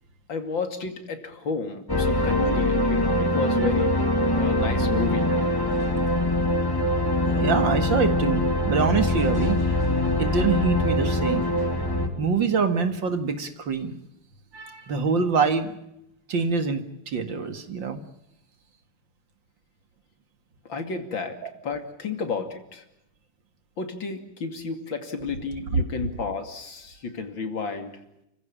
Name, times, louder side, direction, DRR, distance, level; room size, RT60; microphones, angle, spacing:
voice 1, 0.3-4.0 4.3-5.2 20.6-21.4 21.6-22.8 23.8-28.0, left 4 dB, 60° left, 7 dB, 3.3 m, -31 dB
sound 1, 1.9-12.1, left 1 dB, 10° left, 3.4 m, -23 dB
voice 2, 7.3-9.8 10.2-11.5 12.2-14.0 14.5-15.7 16.3-18.0 21.4-21.5 25.7-25.8, right 5 dB, 60° right, 9 dB, 2.5 m, -25 dB
30.0 x 15.5 x 8.7 m, 0.83 s
omnidirectional pair, 2.4 m